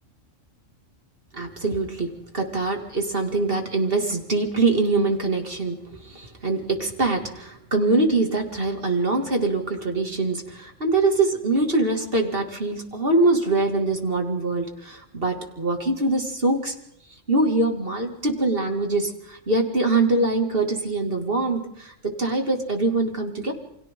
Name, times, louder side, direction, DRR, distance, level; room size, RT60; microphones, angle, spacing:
voice 1, 1.3-16.7 17.3-23.5, right 2 dB, 45° right, 4 dB, 2.7 m, -23 dB
29.0 x 24.5 x 3.8 m, 0.76 s
omnidirectional pair, 1.3 m